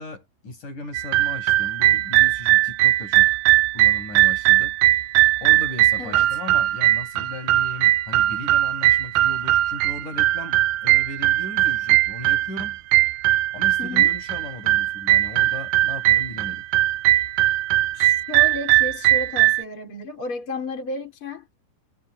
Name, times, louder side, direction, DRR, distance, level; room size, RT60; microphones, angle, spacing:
voice 1, 0.0-3.4 3.7-4.8 5.4-12.8 13.5-16.7, left 2 dB, 45° left, 9.0 m, -37 dB
sound 1, 0.9-19.6, right 16 dB, 85° right, 2.0 m, -20 dB
voice 2, 6.0-6.4 13.8-14.1 17.9-21.5, left 1 dB, 30° left, 4.6 m, -32 dB
omnidirectional pair, 4.9 m